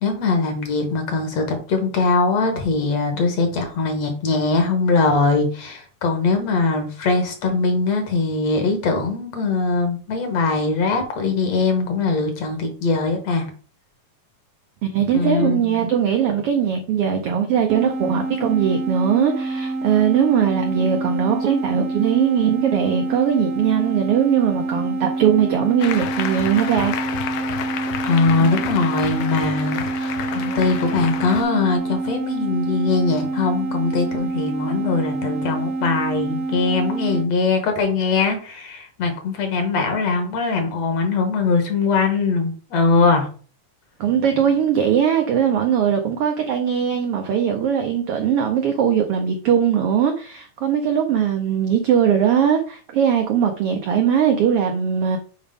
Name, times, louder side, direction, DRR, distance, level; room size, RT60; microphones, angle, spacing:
voice 1, 0.0-13.5 15.1-15.6 28.0-43.3, left 4 dB, 60° left, 2.3 m, -21 dB
voice 2, 14.8-26.9 28.4-28.5 44.0-55.2, right 8 dB, 85° right, 1.3 m, -20 dB
sound 1, 17.7-37.3, right 3 dB, 65° right, 1.4 m, -27 dB
Applause, 25.8-31.4, left 9 dB, 85° left, 1.3 m, -30 dB
7.7 x 4.8 x 3.6 m
omnidirectional pair, 3.6 m